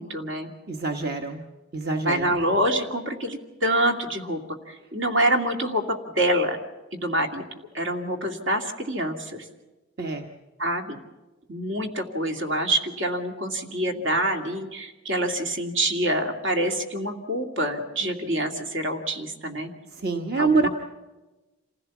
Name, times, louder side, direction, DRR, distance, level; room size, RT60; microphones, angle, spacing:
voice 1, 0.0-0.5 1.9-4.4 4.7-6.6 6.9-7.4 7.7-9.4 10.6-11.0 11.5-19.7 20.4-20.7, right 1 dB, 70° right, 3 dB, 2.4 m, -26 dB
voice 2, 0.7-1.4 1.7-2.3 10.0-10.3 20.0-20.7, right 3 dB, 45° right, 4 dB, 1.1 m, -25 dB
27.5 x 16.0 x 7.1 m, 1.1 s
head